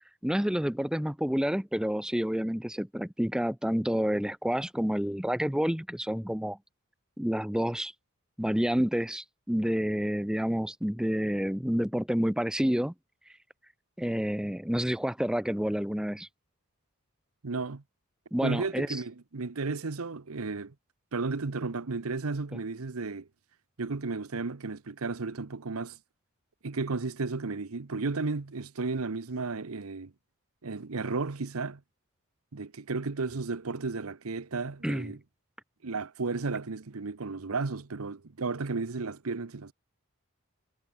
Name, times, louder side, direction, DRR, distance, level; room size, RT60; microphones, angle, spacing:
voice 1, 0.2-6.6 7.2-7.9 8.4-12.9 14.0-16.3 18.3-18.9 34.8-35.2, equal, 5° right, 0.7 m, -29 dB
voice 2, 17.4-17.8 18.4-20.7 21.1-23.3 23.8-26.0 26.6-30.1 30.6-31.8 32.5-35.2 35.8-39.7, right 3 dB, 80° right, 0.9 m, -33 dB
head